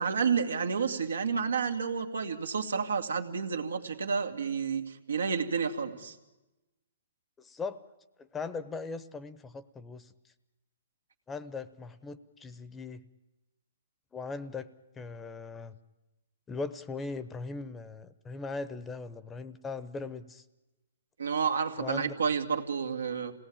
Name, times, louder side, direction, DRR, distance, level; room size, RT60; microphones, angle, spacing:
voice 1, 0.0-6.2 21.2-23.3, right 6 dB, 90° right, 5 dB, 2.2 m, -30 dB
voice 2, 7.4-7.8 8.2-10.1 11.3-13.0 14.1-14.7 15.0-15.8 16.5-20.4 21.8-22.1, left 4 dB, 15° left, 14 dB, 0.9 m, -39 dB
26.5 x 18.0 x 8.8 m, 1.0 s
hypercardioid pair, 135°, 0 cm